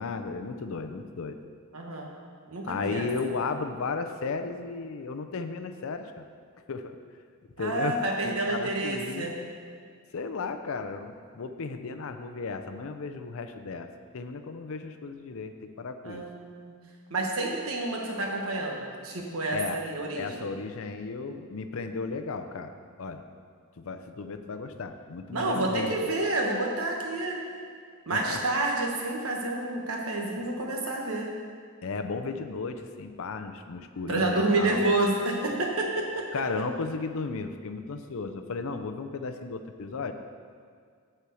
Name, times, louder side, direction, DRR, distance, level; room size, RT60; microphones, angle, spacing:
voice 1, 0.0-1.4 2.6-6.3 6.7-7.0 7.6-9.3 10.1-16.2 19.5-19.8 20.1-22.7 23.0-23.2 23.8-25.9 28.1-28.4 31.8-34.8 36.3-40.1, left 4 dB, 65° left, 8 dB, 0.5 m, -34 dB
voice 2, 1.7-2.1 2.5-3.1 7.6-9.3 16.0-16.7 17.1-20.5 25.3-27.4 28.1-31.3 34.1-36.2, right 2 dB, 70° right, 0 dB, 1.3 m, -29 dB
8.2 x 4.5 x 7.0 m, 2.1 s
head